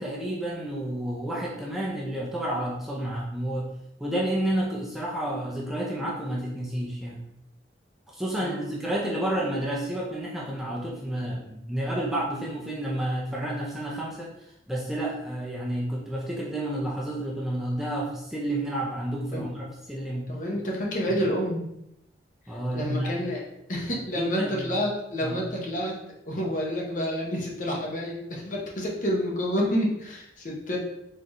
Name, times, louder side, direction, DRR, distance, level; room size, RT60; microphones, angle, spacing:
voice 1, 0.0-3.7 4.0-7.2 8.1-14.3 14.7-20.3 21.1-21.2 22.5-23.1 24.1-24.7 25.2-25.4, right 1 dB, ahead, -5 dB, 0.5 m, -30 dB
voice 2, 8.4-8.7 19.3-19.5 20.3-21.6 22.8-23.4 23.7-26.0 26.3-30.8, equal, 45° left, -2 dB, 0.8 m, -29 dB
4.3 x 3.1 x 2.6 m, 0.82 s
head